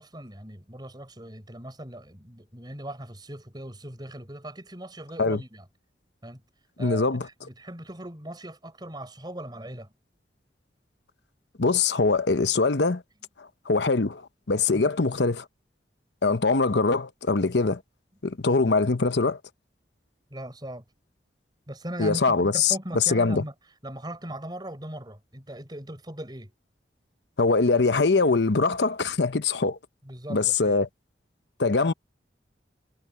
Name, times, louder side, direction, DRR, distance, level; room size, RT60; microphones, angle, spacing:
voice 1, 0.0-5.6 6.2-6.4 6.8-9.9 14.7-14.9 20.3-20.8 21.7-23.5 23.8-26.5 30.0-30.8, right 1 dB, 25° right, 6.6 m, -39 dB
voice 2, 6.8-7.3 11.6-13.0 13.4-14.2 14.5-15.4 16.2-17.8 18.2-19.4 22.0-23.4 27.4-29.8 30.3-30.9 31.6-31.9, left 4 dB, 75° left, 0.9 m, -23 dB
head